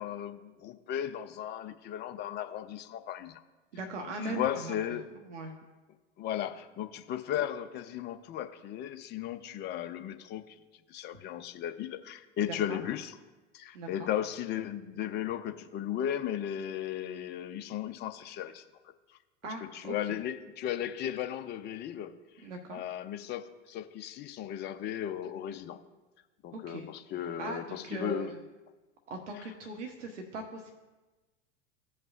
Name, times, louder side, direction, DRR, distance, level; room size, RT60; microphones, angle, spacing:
voice 1, 0.0-3.4 4.2-5.1 6.2-10.5 10.9-13.1 13.5-18.6 19.6-22.1 22.7-25.8 26.4-28.4 29.3-29.4, left 10 dB, 30° left, 9 dB, 0.6 m, -36 dB
voice 2, 3.7-4.8 5.3-5.5 12.4-12.8 13.7-14.1 19.4-20.2 22.4-22.8 26.5-26.9 27.4-28.4 29.1-30.7, right 2 dB, 85° right, 3 dB, 1.0 m, -40 dB
16.5 x 5.5 x 2.4 m, 1.2 s
hypercardioid pair, 95°, 35 cm